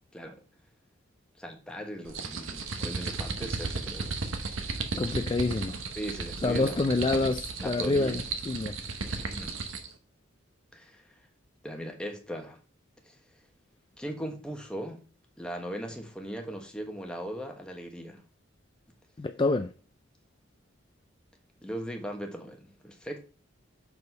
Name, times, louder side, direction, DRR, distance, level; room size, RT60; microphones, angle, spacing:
voice 1, 1.4-4.2 5.1-5.3 6.0-8.3 9.0-9.6 10.7-11.0 11.6-12.6 13.0-13.1 14.0-15.0 15.4-18.2 21.6-23.2, equal, 5° left, 1.2 m, -39 dB
sound 1, 2.1-9.9, right 3 dB, 85° right, 1.1 m, -35 dB
voice 2, 5.0-5.8 6.4-8.8 19.2-19.7, left 3 dB, 25° left, 0.4 m, -27 dB
6.2 x 5.2 x 5.4 m
head